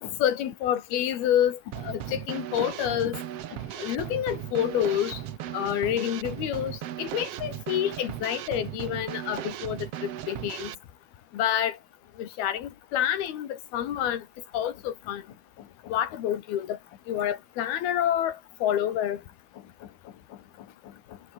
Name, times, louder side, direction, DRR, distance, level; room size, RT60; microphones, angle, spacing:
voice 1, 0.2-3.2 3.8-5.2 5.5-10.7 11.3-11.8 12.2-14.2 14.5-15.2 15.9-16.8 17.1-19.2, left 10 dB, 90° left, 4.0 m, -28 dB
Drum kit / Snare drum, 1.7-10.8, right 11 dB, 70° right, 1.5 m, -37 dB
voice 2, 15.6-15.9 19.6-21.3, left 11 dB, 60° left, 3.0 m, -46 dB
omnidirectional pair, 4.3 m